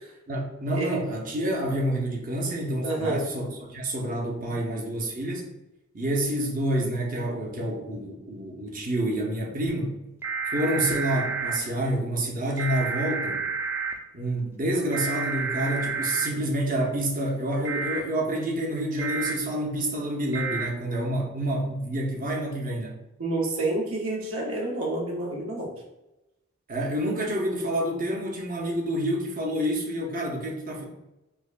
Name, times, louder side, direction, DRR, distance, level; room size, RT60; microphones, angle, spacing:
voice 1, 0.3-5.4 5.9-10.0 10.5-13.4 14.1-23.0 26.7-30.8, right 1 dB, 40° right, -1 dB, 0.7 m, -28 dB
voice 2, 2.8-3.2 23.2-25.7, right 2 dB, 85° right, -1 dB, 1.0 m, -28 dB
sound 1, 10.2-11.6 12.6-13.9 14.9-16.3 17.6-18.0 19.0-19.3 20.3-20.7, right 5 dB, 10° right, 0.4 m, -30 dB
4.9 x 2.1 x 2.5 m, 0.94 s
head